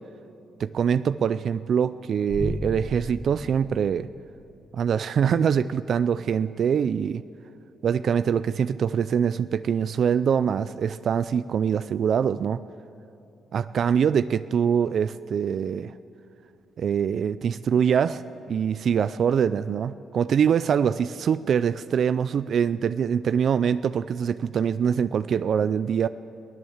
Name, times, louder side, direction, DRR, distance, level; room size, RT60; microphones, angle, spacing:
voice 1, 0.6-4.1 4.7-7.2 7.8-12.6 13.5-15.9 16.8-18.2 18.5-26.1, right 7 dB, 60° right, 14 dB, 0.4 m, -24 dB
sound 1, 2.3-4.6, equal, 5° left, 0.7 m, -34 dB
23.0 x 16.0 x 7.3 m, 2.8 s
cardioid pair, 105°, 0 cm